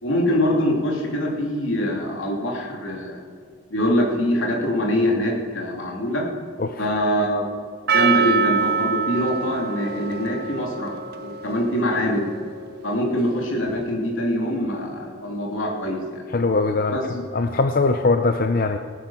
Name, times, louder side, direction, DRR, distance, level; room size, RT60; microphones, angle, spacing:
voice 1, 0.0-3.2 3.7-6.2 6.8-7.5 7.9-12.3 12.8-16.2 16.9-17.0, equal, 85° left, -1 dB, 3.0 m, -24 dB
Percussion, 7.9-12.8, right 6 dB, 50° right, 0.7 m, -25 dB
voice 2, 16.3-18.8, left 3 dB, 45° left, 8 dB, 0.5 m, -21 dB
18.0 x 9.4 x 5.8 m, 2.2 s
head